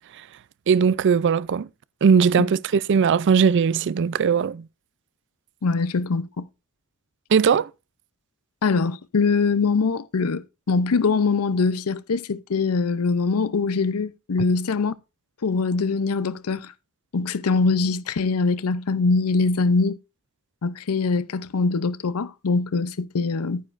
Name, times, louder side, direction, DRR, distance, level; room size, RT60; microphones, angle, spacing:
voice 1, 0.7-1.7 2.0-4.6 7.3-7.7, right 6 dB, 55° right, 0.4 m, -19 dB
voice 2, 5.6-6.4 8.6-14.9 15.4-16.7 17.1-20.0 20.6-23.6, left 4 dB, 85° left, 0.6 m, -23 dB
11.0 x 9.4 x 2.5 m
head